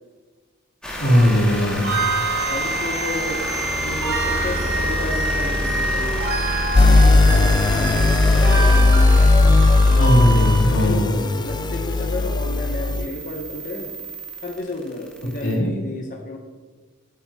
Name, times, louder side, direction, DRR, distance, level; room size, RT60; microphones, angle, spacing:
sound 1, 0.8-15.5, equal, 5° left, 2.2 m, -30 dB
voice 1, 1.0-1.9 10.0-11.1 15.4-15.7, equal, 85° left, -5 dB, 3.3 m, -18 dB
sound 2, 1.8-10.6, right 3 dB, 85° right, 3.0 m, -26 dB
voice 2, 2.4-3.5 3.8-6.3 6.8-9.3 10.8-13.9 14.4-16.4, left 1 dB, 40° left, 1 dB, 0.9 m, -32 dB
sound 3, 6.7-13.1, left 3 dB, 20° left, 0.4 m, -16 dB
13.5 x 8.5 x 2.9 m, 1.5 s
head